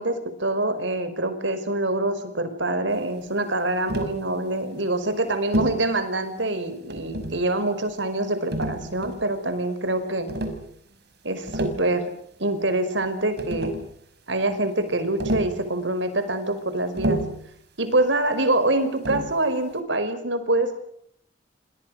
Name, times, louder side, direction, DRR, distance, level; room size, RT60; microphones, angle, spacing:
voice 1, 0.0-10.3 11.2-12.1 12.4-13.8 14.3-17.2 17.8-20.8, right 2 dB, 75° right, 11 dB, 5.2 m, -25 dB
Tap, 3.9-4.2 5.5-5.8 6.9-7.5 8.5-9.3 10.3-10.6 11.3-11.9 13.0-13.1 13.4-13.9 15.2-15.6 17.0-17.4 19.0-19.4, right 1 dB, 60° right, 5.8 m, -28 dB
29.5 x 26.0 x 6.6 m, 0.67 s
head